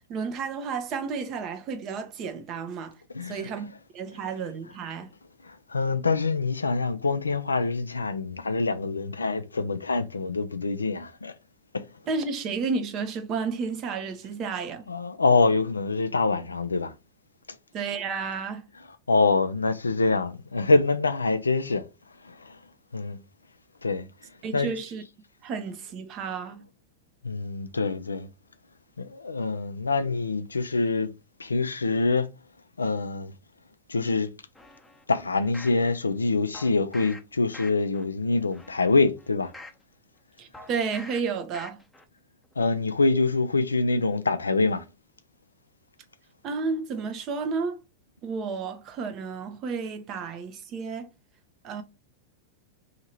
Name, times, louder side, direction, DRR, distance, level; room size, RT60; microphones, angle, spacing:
voice 1, 0.1-3.0 3.2-3.7 3.9-5.1 12.1-14.9 17.7-18.7 24.4-25.0 25.4-26.6 40.4-41.8 46.4-47.8 48.2-51.1 51.6-51.8, right 5 dB, 40° right, 0.8 m, -32 dB
voice 2, 3.1-3.5 5.4-11.3 11.7-11.8 14.9-16.9 19.1-21.9 22.2-22.6 22.9-23.2 23.8-24.1 24.5-24.7 27.2-28.3 29.0-31.1 31.4-32.3 32.8-33.3 33.9-34.3 35.1-39.5 42.6-44.8, left 3 dB, 90° left, 0.4 m, -25 dB
sound 1, 34.6-35.8 36.5-37.2 37.5-38.0 38.5-39.8 40.5-41.2 41.5-42.0 42.4-42.5, left 2 dB, 10° left, 0.7 m, -46 dB
2.8 x 2.7 x 4.4 m
hypercardioid pair, 95°, 0 cm